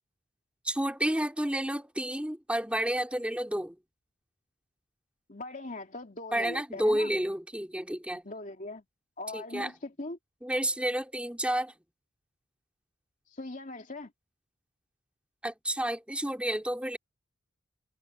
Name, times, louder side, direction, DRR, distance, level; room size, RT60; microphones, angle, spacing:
voice 1, 0.6-3.8 6.3-8.2 9.3-9.7 10.4-11.7 15.4-17.0, right 1 dB, 5° right, 3.1 m, -30 dB
voice 2, 5.3-7.1 8.2-8.8 9.2-10.2 13.3-14.1, left 2 dB, 40° left, 2.6 m, -40 dB
head